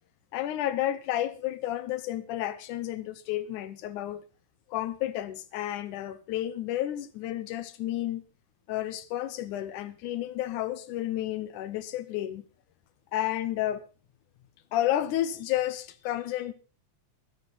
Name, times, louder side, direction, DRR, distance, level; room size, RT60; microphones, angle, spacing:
voice 1, 0.3-4.2 4.7-8.2 8.7-12.5 13.1-13.9 14.7-16.5, left 13 dB, 85° left, 2.4 m, -31 dB
23.0 x 7.9 x 4.0 m
omnidirectional pair, 3.4 m